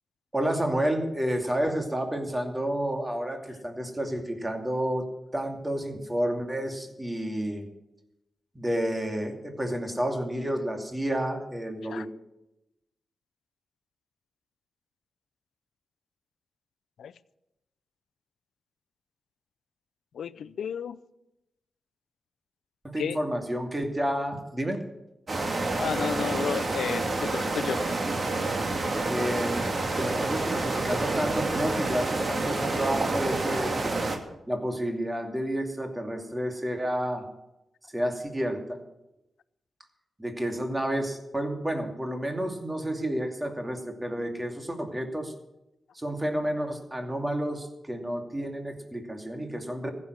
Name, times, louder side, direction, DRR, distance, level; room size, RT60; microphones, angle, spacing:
voice 1, 0.3-5.1 5.3-7.7 8.5-12.1 22.8-24.8 29.1-34.0 34.5-37.3 37.9-38.8 40.2-45.3 45.9-49.9, right 1 dB, 15° right, 2.5 m, -30 dB
voice 2, 20.1-21.0 23.0-23.2 25.8-27.8, left 8 dB, 85° left, 0.5 m, -32 dB
sound 1, 25.3-34.2, right 2 dB, 50° right, 2.3 m, -28 dB
15.0 x 7.5 x 9.6 m
cardioid pair, 65°, 0 cm